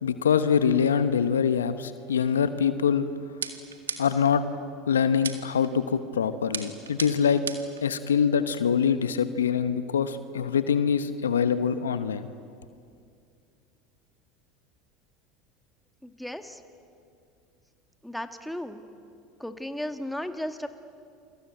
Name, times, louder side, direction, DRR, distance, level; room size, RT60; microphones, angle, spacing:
voice 1, 0.0-3.1 4.0-4.4 4.9-7.4 7.8-12.3, left 7 dB, 85° left, 11 dB, 1.1 m, -24 dB
sound 1, 3.4-4.3 5.2-5.7 6.5-7.8, right 7 dB, 85° right, 1.8 m, -35 dB
voice 2, 16.0-16.6 18.0-18.8 19.4-20.7, left 1 dB, 5° left, 7 dB, 2.1 m, -35 dB
29.0 x 24.5 x 8.0 m, 2.4 s
hypercardioid pair, 75°, 0 cm